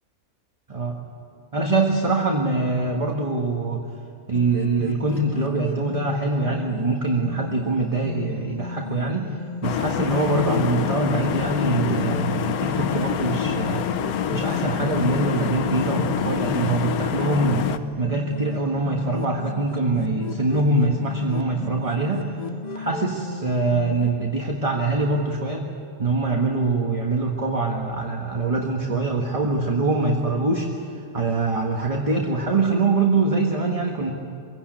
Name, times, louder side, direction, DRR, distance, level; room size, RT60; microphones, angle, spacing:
voice 1, 0.7-1.0 1.5-3.8 4.3-9.3 9.6-13.9 14.3-17.7 18.0-22.3 22.7-25.7 26.0-30.7 31.1-34.1, right 3 dB, 25° right, 0 dB, 1.6 m, -23 dB
sound 1, 4.3-24.1, left 5 dB, 40° left, 0.7 m, -34 dB
sound 2, 9.6-17.8, left 8 dB, 80° left, 1.3 m, -26 dB
24.0 x 17.0 x 9.1 m, 2.3 s
omnidirectional pair, 1.5 m